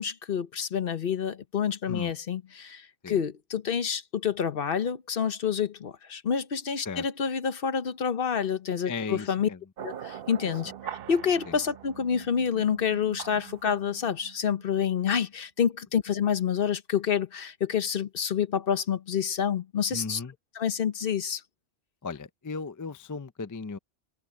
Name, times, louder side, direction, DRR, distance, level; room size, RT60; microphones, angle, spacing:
voice 1, 0.0-9.5 9.8-20.2 20.5-21.4, left 7 dB, 60° left, 1.1 m, -28 dB
voice 2, 8.8-9.6 11.5-11.6 19.9-20.3 22.0-23.8, left 4 dB, 25° left, 0.4 m, -36 dB
sound 1, 9.8-15.1, right 10 dB, 65° right, 0.9 m, -43 dB
omnidirectional pair, 1.1 m